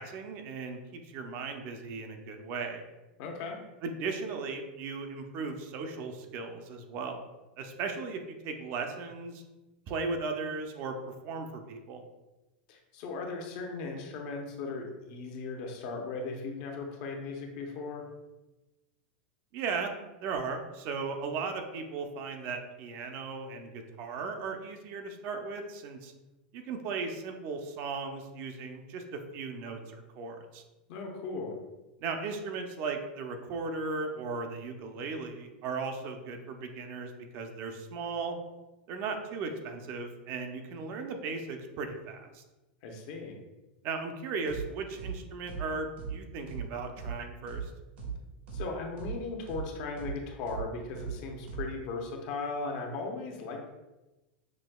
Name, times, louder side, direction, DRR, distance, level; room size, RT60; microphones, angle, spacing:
voice 1, 0.0-2.8 3.8-7.2 7.6-9.4 9.9-10.9 11.2-12.0 19.5-19.9 20.2-26.1 26.5-29.0 29.3-30.6 32.0-38.3 38.9-42.4 43.8-47.7, right 4 dB, 40° right, 5 dB, 0.5 m, -37 dB
voice 2, 3.2-3.6 12.7-18.1 30.9-31.6 42.8-43.4 48.5-53.7, left 3 dB, 50° left, 2 dB, 0.8 m, -37 dB
sound 1, 44.5-44.6 45.0-45.1 45.5-45.6 46.0-46.1 46.5-46.6 47.0-47.1 47.5-47.6 48.0-48.1 48.5-48.6 49.0-49.1 49.5-49.6 50.0-50.1 50.5-50.6 51.0-51.1 51.5-51.6, right 7 dB, 80° right, 1.1 m, -37 dB
6.1 x 2.7 x 2.3 m, 1.1 s
supercardioid pair, 145°, 6 cm